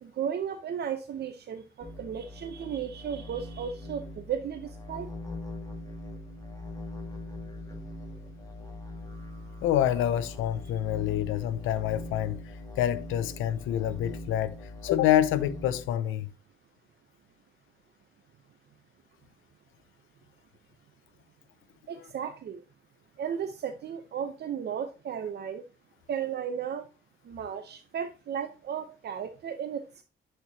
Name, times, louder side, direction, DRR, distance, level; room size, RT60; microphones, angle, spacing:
voice 1, 0.0-5.1 21.9-22.6 23.2-25.6 26.1-26.9 27.2-30.0, right 8 dB, 55° right, 0.7 m, -35 dB
sound 1, 1.8-15.9, left 2 dB, 15° left, 1.8 m, -42 dB
voice 2, 9.6-12.4 12.8-14.6 14.8-16.3, left 11 dB, 85° left, 0.6 m, -27 dB
7.9 x 4.4 x 2.8 m
cardioid pair, 90°, 20 cm